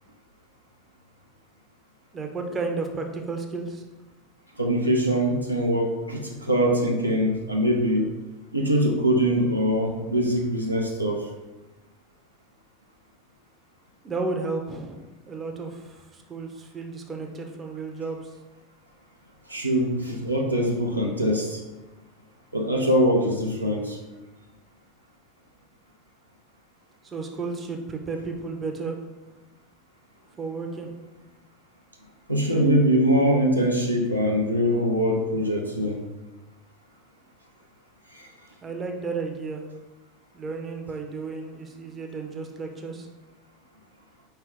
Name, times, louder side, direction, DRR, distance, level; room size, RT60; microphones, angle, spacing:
voice 1, 2.1-3.8 14.0-15.0 15.3-18.3 27.0-29.0 30.4-30.9 38.6-39.6 40.3-43.1, right 4 dB, 25° right, 3 dB, 0.6 m, -33 dB
voice 2, 4.6-8.1 8.5-11.3 19.5-21.6 22.5-24.0 32.3-36.0 38.2-38.3, equal, 90° right, 0 dB, 0.6 m, -23 dB
4.6 x 3.4 x 3.4 m, 1.1 s
figure-of-eight pair, 80°, 0 cm